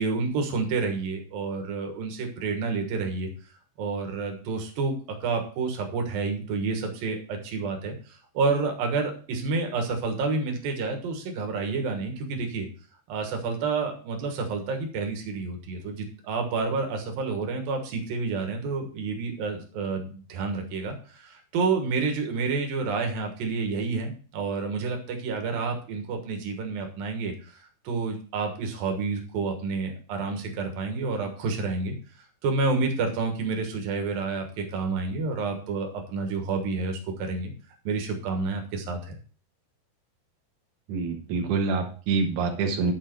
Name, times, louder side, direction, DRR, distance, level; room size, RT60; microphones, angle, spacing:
voice 1, 0.0-3.3 3.8-12.7 13.1-31.9 32.4-37.5 37.8-39.2, right 4 dB, 90° right, 4 dB, 3.2 m, -29 dB
voice 2, 40.9-42.9, right 4 dB, 70° right, 2 dB, 2.7 m, -26 dB
10.0 x 6.0 x 4.5 m, 0.41 s
omnidirectional pair, 3.9 m